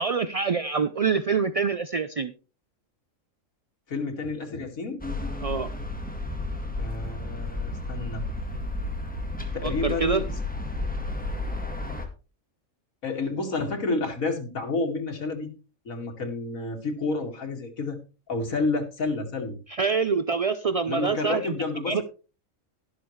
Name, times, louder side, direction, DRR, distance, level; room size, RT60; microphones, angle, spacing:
voice 1, 0.0-2.3 5.4-5.7 9.6-10.2 19.7-21.5 21.9-22.0, right 5 dB, 50° right, 11 dB, 0.4 m, -25 dB
voice 2, 3.9-5.0 6.8-8.2 9.5-10.3 13.0-15.5 15.9-18.0 18.3-19.6 20.9-22.0, left 3 dB, 90° left, 3 dB, 2.6 m, -30 dB
sound 1, 5.0-12.1, left 2 dB, 5° left, 1.9 m, -32 dB
12.0 x 11.5 x 3.2 m, 0.34 s
omnidirectional pair, 1.4 m